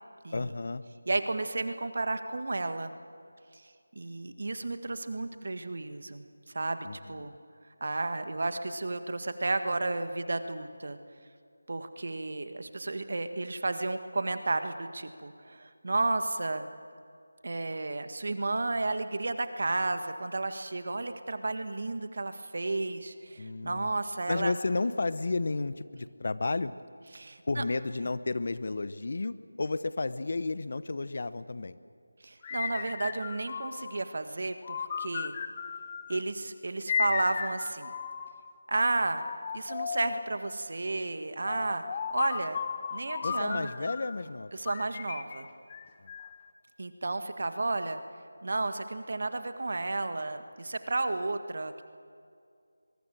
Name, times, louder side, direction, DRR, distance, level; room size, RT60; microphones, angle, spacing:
voice 1, 0.3-0.8 6.8-7.3 23.4-23.9 24.3-26.7 27.5-31.8 43.2-44.5 46.0-46.1, left 3 dB, 50° left, 15 dB, 0.9 m, -32 dB
voice 2, 1.1-2.9 3.9-6.3 6.5-7.3 7.8-11.0 11.7-16.7 17.4-24.5 27.1-27.6 32.2-35.3 36.1-37.9 38.7-39.2 39.5-42.6 42.9-43.9 44.5-45.5 46.8-48.0 48.4-51.8, right 2 dB, 55° right, 9 dB, 1.7 m, -32 dB
sound 1, 32.4-34.0 34.6-36.2 36.9-38.5 39.1-40.3 41.5-44.2 44.7-46.4, left 7 dB, 25° left, 0.9 m, -35 dB
23.5 x 22.0 x 7.4 m, 2.3 s
figure-of-eight pair, 165°, 0 cm